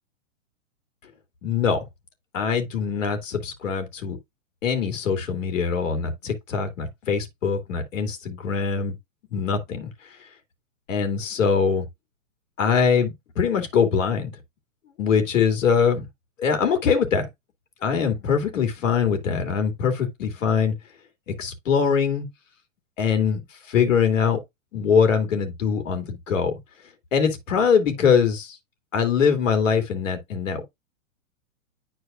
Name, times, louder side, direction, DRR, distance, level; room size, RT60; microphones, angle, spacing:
voice 1, 1.4-1.8 2.3-4.2 4.6-8.9 9.3-9.9 10.9-11.9 12.6-14.3 15.0-16.1 16.4-17.3 17.8-20.7 21.3-22.3 23.0-23.4 23.7-24.4 24.7-26.6 27.1-28.6 28.9-30.6, left 6 dB, 75° left, 2.5 m, -22 dB
10.5 x 4.5 x 2.5 m
hypercardioid pair, 145°, 39 cm